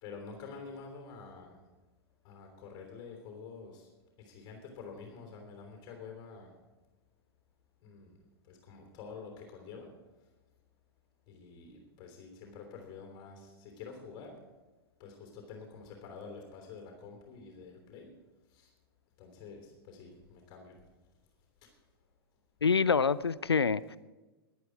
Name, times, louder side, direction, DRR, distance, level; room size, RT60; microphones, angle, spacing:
voice 1, 0.0-1.6 2.2-3.9 4.2-6.5 7.8-8.2 8.4-9.9 11.3-14.4 15.0-18.1 18.5-18.7 19.2-20.8 21.6-21.7, left 5 dB, 35° left, 3 dB, 3.2 m, -48 dB
voice 2, 22.6-24.0, left 5 dB, 85° left, 18 dB, 0.4 m, -26 dB
16.5 x 11.0 x 4.7 m, 1.2 s
figure-of-eight pair, 100°, 13 cm